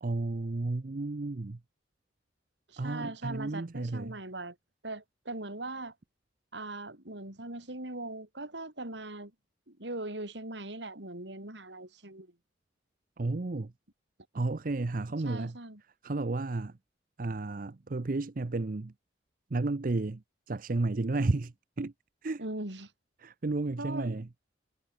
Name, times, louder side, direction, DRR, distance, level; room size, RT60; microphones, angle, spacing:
voice 1, 0.0-1.6 2.8-4.2 13.2-13.7 14.3-15.6 16.0-16.7 17.2-18.9 19.5-21.9 22.2-22.4 23.2-24.3, right 2 dB, 50° right, 0.6 m, -32 dB
voice 2, 2.7-4.6 4.8-5.9 6.5-9.3 9.7-12.3 15.2-15.8 22.4-22.9 23.8-24.2, right 2 dB, 75° right, 4.6 m, -40 dB
head